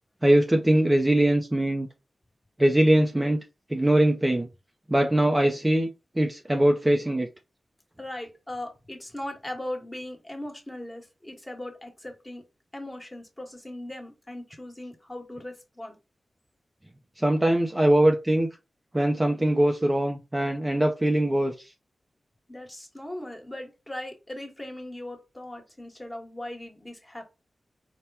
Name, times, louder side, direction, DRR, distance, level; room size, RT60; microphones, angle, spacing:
voice 1, 0.2-1.9 2.6-3.4 3.7-4.5 4.9-7.3 17.2-18.5 18.9-21.7, right 1 dB, 15° right, 0.5 m, -22 dB
voice 2, 8.0-12.4 12.7-16.0 22.5-27.2, left 1 dB, 15° left, 1.2 m, -39 dB
4.3 x 2.2 x 3.4 m
wide cardioid pair, 90°, 0 cm